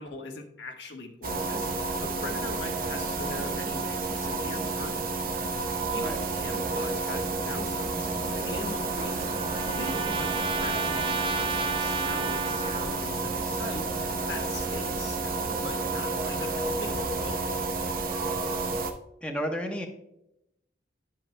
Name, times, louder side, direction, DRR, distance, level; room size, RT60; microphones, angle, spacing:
voice 1, 0.0-4.9 5.6-17.4, left 2 dB, 75° left, 2 dB, 1.3 m, -41 dB
sound 1, 1.2-18.9, right 3 dB, 55° right, 0.9 m, -30 dB
sound 2, 6.0-18.0, left 1 dB, 55° left, 1.1 m, -43 dB
Trumpet, 8.4-13.2, right 4 dB, 30° right, 0.6 m, -33 dB
voice 2, 19.2-19.9, equal, 5° left, 1 dB, 1.0 m, -32 dB
10.5 x 7.4 x 2.2 m, 0.83 s
head